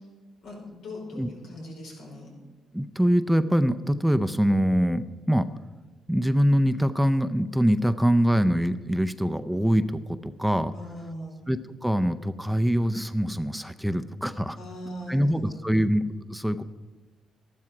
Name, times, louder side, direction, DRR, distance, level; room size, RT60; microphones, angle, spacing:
voice 1, 0.4-2.3 10.7-11.4 14.5-15.6, equal, 85° left, -2 dB, 5.0 m, -39 dB
voice 2, 2.7-5.5 6.1-10.7 11.5-14.6 15.1-16.6, equal, ahead, 11 dB, 0.5 m, -24 dB
13.0 x 12.0 x 4.8 m, 1.2 s
cardioid pair, 90°, 0 cm